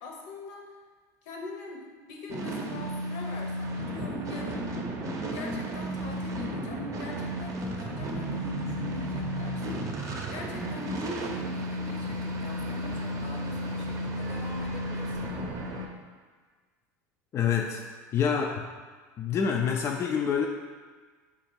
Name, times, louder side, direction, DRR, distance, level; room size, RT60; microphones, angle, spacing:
voice 1, 0.0-0.7 1.2-4.8 5.3-9.8 10.3-15.2, left 3 dB, 65° left, 1 dB, 0.8 m, -43 dB
sound 1, 2.3-15.9, equal, 40° right, 0.6 m, -33 dB
voice 2, 17.3-17.8 18.1-18.7 19.2-20.5, left 7 dB, 35° left, 1 dB, 0.3 m, -26 dB
4.4 x 2.4 x 4.4 m, 1.5 s
hypercardioid pair, 90°, 9 cm